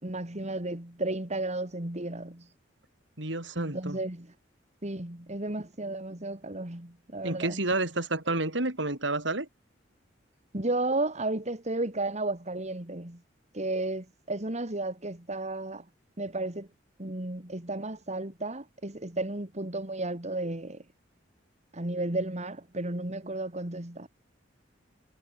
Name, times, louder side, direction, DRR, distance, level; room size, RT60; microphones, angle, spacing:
voice 1, 0.0-2.5 3.6-4.3 4.8-7.6 10.5-13.2 13.5-15.8 16.2-16.7 17.0-20.8 21.7-24.1, right 2 dB, 40° right, 2.9 m, -33 dB
voice 2, 3.2-4.0 7.2-9.5, right 2 dB, 70° right, 4.6 m, -30 dB
head